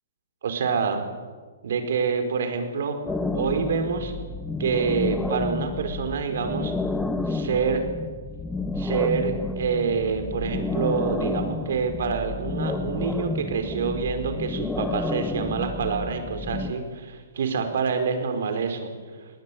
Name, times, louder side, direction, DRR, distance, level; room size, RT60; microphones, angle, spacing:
voice 1, 0.4-1.0 1.6-3.0 3.3-4.1 4.6-6.7 7.3-7.9 8.8-18.9, right 5 dB, 65° right, 7 dB, 4.9 m, -26 dB
sound 1, 3.1-16.7, left 3 dB, 5° left, 1.3 m, -30 dB
22.0 x 19.0 x 9.3 m, 1.5 s
hypercardioid pair, 130°, 0 cm